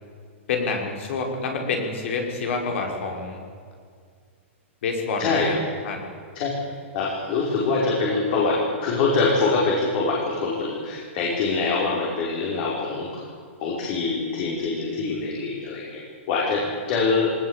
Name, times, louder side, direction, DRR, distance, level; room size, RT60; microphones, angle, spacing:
voice 1, 0.5-3.4 4.8-6.1, left 4 dB, 65° left, 2 dB, 5.7 m, -28 dB
voice 2, 6.9-13.2 13.6-16.0 16.3-17.4, left 4 dB, 45° left, -3 dB, 5.4 m, -24 dB
21.5 x 19.5 x 8.5 m, 2.1 s
hypercardioid pair, 150°, 7 cm